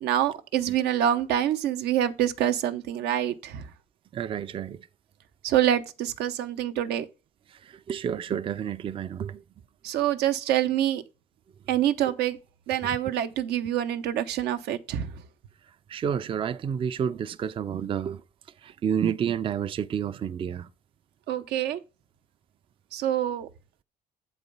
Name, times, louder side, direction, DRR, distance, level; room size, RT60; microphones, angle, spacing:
voice 1, 0.0-3.7 5.4-7.1 9.8-11.0 11.7-12.4 12.7-15.1 21.3-21.8 22.9-23.5, right 11 dB, 80° right, 0.7 m, -26 dB
voice 2, 4.1-4.8 7.9-9.4 15.9-18.2 18.6-20.7, right 8 dB, 30° right, 0.4 m, -29 dB
7.7 x 4.1 x 5.3 m
cardioid pair, 110°, 17 cm